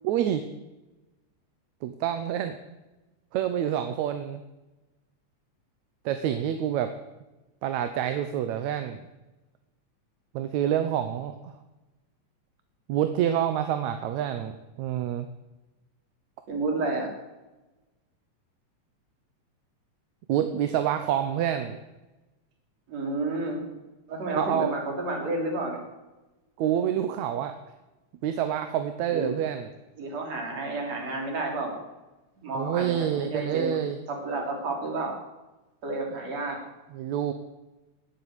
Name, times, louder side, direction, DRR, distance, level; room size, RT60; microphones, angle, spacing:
voice 1, 0.0-0.5 1.8-2.6 3.3-4.4 6.1-6.9 7.6-9.0 10.3-11.5 12.9-15.3 20.3-21.8 24.4-24.7 26.6-27.6 28.2-29.7 32.5-34.0 36.9-37.3, right 10 dB, 75° right, 8 dB, 2.2 m, -27 dB
voice 2, 16.5-17.1 22.9-23.8 24.1-25.8 29.1-29.3 30.0-31.8 32.4-33.8 34.1-35.2 35.8-36.6, right 2 dB, 60° right, 1 dB, 4.5 m, -31 dB
18.5 x 7.8 x 8.2 m, 1.1 s
omnidirectional pair, 3.4 m